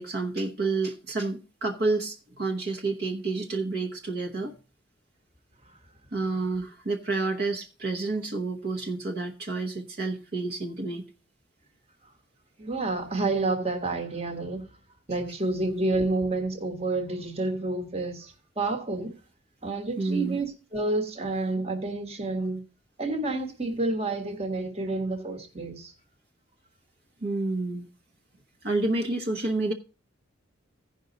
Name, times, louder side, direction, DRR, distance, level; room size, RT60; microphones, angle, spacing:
voice 1, 0.0-4.5 6.1-11.0 20.0-20.4 27.2-27.9 28.6-29.7, right 3 dB, 50° right, 1.1 m, -29 dB
voice 2, 12.6-14.7 15.1-19.1 19.6-22.6 23.0-25.9, right 2 dB, 30° right, 1.4 m, -29 dB
15.5 x 5.4 x 3.9 m
head